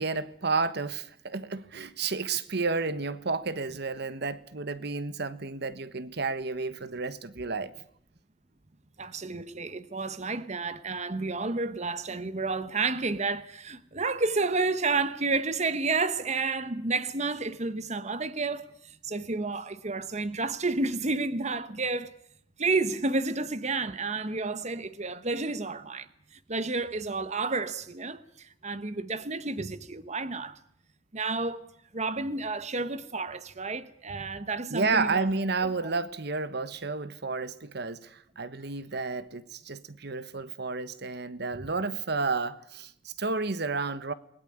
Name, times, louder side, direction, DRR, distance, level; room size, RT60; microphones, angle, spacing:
voice 1, 0.0-7.7 34.7-44.1, right 4 dB, 60° right, 1.3 m, -31 dB
voice 2, 9.0-22.1 22.6-30.6 31.1-31.7 31.9-35.3, right 3 dB, 35° right, 1.1 m, -31 dB
28.5 x 21.0 x 10.0 m
head